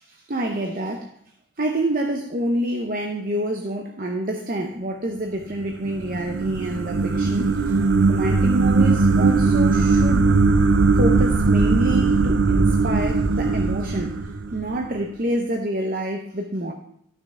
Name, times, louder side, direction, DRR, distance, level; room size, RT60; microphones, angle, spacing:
voice 1, 0.1-1.2 1.6-7.8 8.1-10.3 10.9-16.7, right 1 dB, 45° right, 3 dB, 0.7 m, -27 dB
sound 1, 5.6-14.9, right 3 dB, 80° right, 0.6 m, -19 dB
13.0 x 6.4 x 3.7 m, 0.69 s
head